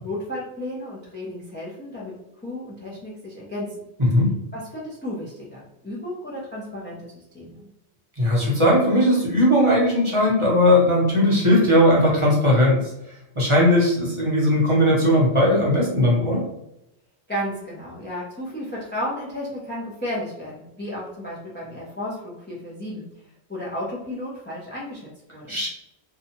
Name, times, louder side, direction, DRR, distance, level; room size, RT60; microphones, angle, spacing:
voice 1, 0.0-2.1 2.4-3.7 4.5-7.7 17.3-23.1 23.5-25.6, left 1 dB, 15° left, -5 dB, 0.4 m, -33 dB
voice 2, 4.0-4.3 8.2-12.9 13.3-16.4 25.5-25.7, left 1 dB, 30° right, -6 dB, 0.8 m, -18 dB
2.8 x 2.3 x 2.8 m, 0.86 s
omnidirectional pair, 1.2 m